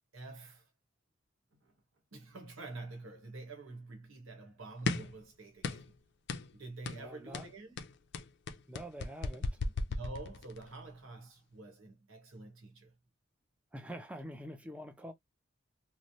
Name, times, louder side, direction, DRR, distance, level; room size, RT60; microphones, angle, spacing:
voice 1, 0.1-0.7 1.5-1.8 2.1-6.0 6.5-7.8 9.9-12.9, right 3 dB, 90° right, 1.0 m, -47 dB
sound 1, 4.9-5.2 5.6-6.0 6.3-6.5 6.9-7.1 7.3-10.7, left 3 dB, 60° left, 0.4 m, -36 dB
voice 2, 6.9-7.5 8.7-9.5 13.7-15.1, equal, 5° right, 0.4 m, -45 dB
3.0 x 2.0 x 2.6 m
head